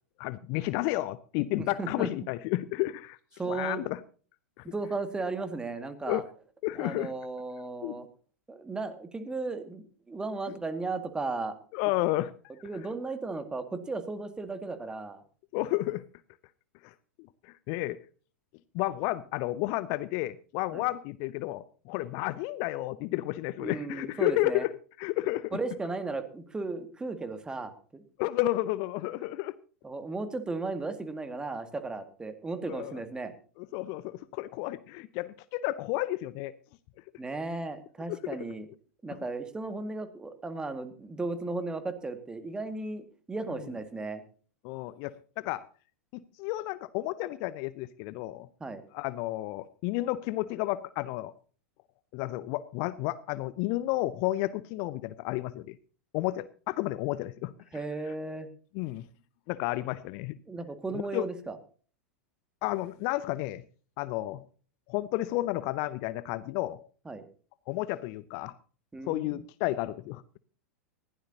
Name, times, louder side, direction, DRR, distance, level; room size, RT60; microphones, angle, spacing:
voice 1, 0.2-3.2 3.4-4.0 4.6-4.7 6.0-6.2 6.6-7.1 7.8-8.0 10.5-10.6 11.7-12.3 15.5-16.0 16.8-16.9 17.4-18.0 18.7-24.7 25.0-25.6 28.2-29.5 32.7-33.0 33.6-36.5 38.1-38.4 39.1-39.2 44.6-45.6 46.1-48.5 48.9-51.3 52.1-55.8 56.1-57.5 58.7-59.0 59.5-60.4 61.1-61.2 62.6-63.6 64.0-64.4 64.9-66.8 67.7-68.5 69.1-70.4, left 17 dB, 40° left, 17 dB, 0.7 m, -31 dB
voice 2, 1.6-2.1 3.4-3.9 4.6-6.2 6.8-8.1 8.5-11.6 12.6-15.2 20.7-20.8 23.6-24.7 25.5-28.0 29.8-33.3 37.2-38.7 39.0-44.2 48.6-48.8 57.7-58.5 60.5-61.6 67.1-67.2 68.9-69.4, right 3 dB, 10° right, 10 dB, 2.0 m, -35 dB
20.5 x 15.5 x 2.8 m, 0.41 s
figure-of-eight pair, 95°, 8 cm